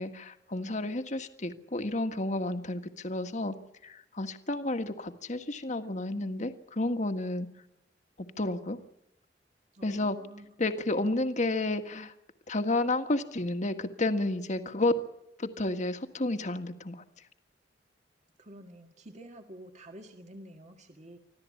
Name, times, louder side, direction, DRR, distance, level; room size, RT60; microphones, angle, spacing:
voice 1, 0.0-3.5 3.8-7.5 8.4-8.8 9.8-10.2 10.6-12.1 12.5-14.9 15.4-17.0, left 2 dB, 45° left, 8 dB, 1.7 m, -31 dB
voice 2, 9.7-10.7 18.4-21.2, right 1 dB, 40° right, 4 dB, 1.9 m, -49 dB
25.5 x 15.5 x 8.6 m, 0.83 s
head